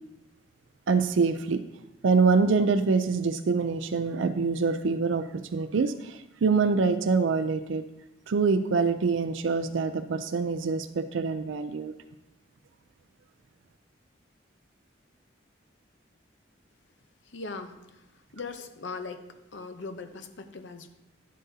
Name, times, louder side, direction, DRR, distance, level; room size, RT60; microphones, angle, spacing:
voice 1, 0.9-1.6 2.0-7.8 8.3-11.9, right 4 dB, 75° right, 10 dB, 0.4 m, -25 dB
voice 2, 17.3-18.0 18.3-19.2 19.5-20.9, left 4 dB, 70° left, 7 dB, 0.7 m, -39 dB
10.5 x 7.5 x 2.7 m, 0.98 s
head